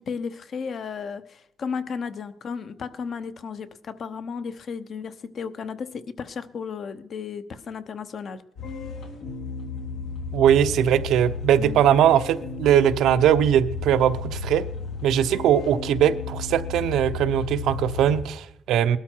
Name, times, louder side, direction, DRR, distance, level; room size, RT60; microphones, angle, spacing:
voice 1, 0.0-8.4 11.6-11.8, left 6 dB, 45° left, 11 dB, 0.9 m, -34 dB
sound 1, 8.6-18.2, left 4 dB, 85° left, 3.4 m, -33 dB
voice 2, 10.3-14.7 15.0-19.0, right 10 dB, 90° right, 10 dB, 0.8 m, -20 dB
20.0 x 12.5 x 4.6 m, 0.78 s
cardioid pair, 155°, 0 cm